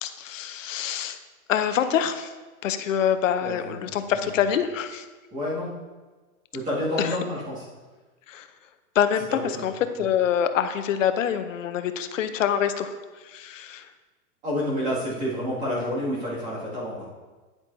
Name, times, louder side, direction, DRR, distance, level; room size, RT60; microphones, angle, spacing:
voice 1, 0.0-1.2 1.5-2.3 2.6-5.0 7.0-7.2 8.3-8.5 8.9-13.9, left 9 dB, 60° left, 9 dB, 0.8 m, -26 dB
voice 2, 3.4-3.9 4.1-4.4 5.3-5.7 6.5-7.6 9.5-9.6 14.4-17.1, left 1 dB, 15° right, -7 dB, 2.3 m, -29 dB
9.8 x 8.1 x 2.7 m, 1.3 s
supercardioid pair, 175°, 43 cm